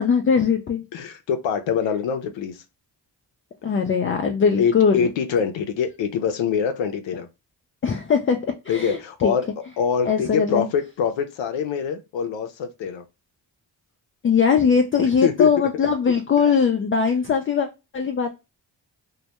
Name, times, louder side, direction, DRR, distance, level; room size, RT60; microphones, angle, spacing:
voice 1, 0.0-0.8 3.6-5.1 7.8-9.3 10.0-10.7 14.2-17.7 17.9-18.3, left 6 dB, 30° left, 0.4 m, -20 dB
voice 2, 0.9-2.6 4.6-7.3 8.7-9.5 9.8-13.0 15.2-15.5, left 7 dB, 85° left, 0.5 m, -24 dB
2.2 x 2.1 x 2.7 m
cardioid pair, 55°, 44 cm